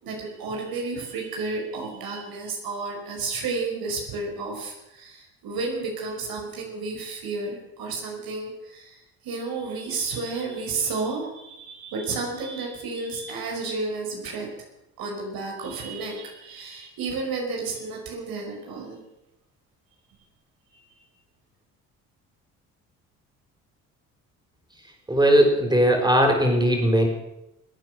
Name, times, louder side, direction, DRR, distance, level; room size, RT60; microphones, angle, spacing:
voice 1, 0.0-8.9 9.2-14.5 15.0-19.0, right 3 dB, 65° right, 0 dB, 5.3 m, -32 dB
voice 2, 25.1-27.1, equal, 10° right, 2 dB, 5.1 m, -19 dB
24.0 x 9.1 x 6.5 m, 0.90 s
hypercardioid pair, 55°, 38 cm